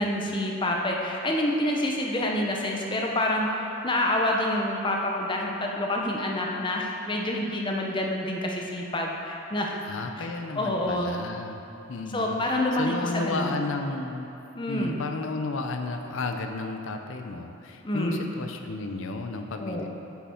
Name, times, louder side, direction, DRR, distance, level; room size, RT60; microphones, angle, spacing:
voice 1, 0.0-9.8 10.2-10.3 10.6-11.1 12.1-13.6 14.5-15.0 17.8-18.2 19.6-19.9, left 1 dB, 25° left, 0 dB, 0.7 m, -27 dB
voice 2, 9.8-11.6 11.9-12.4 12.8-14.3 14.7-19.9, left 3 dB, 70° left, 5 dB, 0.5 m, -32 dB
8.3 x 5.9 x 4.4 m, 2.8 s
head